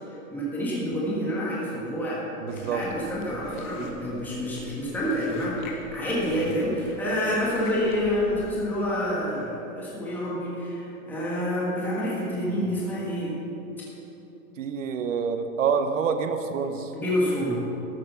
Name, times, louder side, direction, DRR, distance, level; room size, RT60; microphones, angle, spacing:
voice 1, 0.3-2.2 2.6-13.4 16.9-17.6, equal, 5° left, -7 dB, 1.5 m, -28 dB
voice 2, 2.4-2.8 6.3-6.5 12.5-12.8 14.6-16.9, right 6 dB, 60° right, 8 dB, 0.9 m, -28 dB
Chewing mastication, 2.5-8.5, left 3 dB, 35° left, 1.3 m, -45 dB
13.0 x 8.6 x 5.8 m, 3.0 s
supercardioid pair, 170°, 43 cm